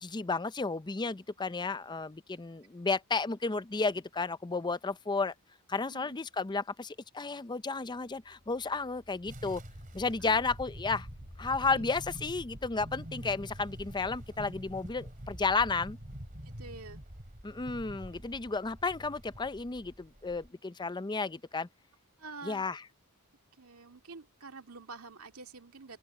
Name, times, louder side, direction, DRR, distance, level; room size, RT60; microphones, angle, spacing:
voice 1, 0.0-5.3 5.7-9.6 9.9-11.1 11.4-16.0 17.4-21.7 22.4-22.8, left 4 dB, 20° left, 0.5 m, -32 dB
sound 1, 7.5-16.9, equal, 40° left, 2.4 m, -58 dB
sound 2, 9.3-20.5, equal, 40° right, 3.7 m, -46 dB
voice 2, 16.6-17.0 22.2-22.7 23.6-26.0, right 4 dB, 70° right, 2.2 m, -47 dB
open air
head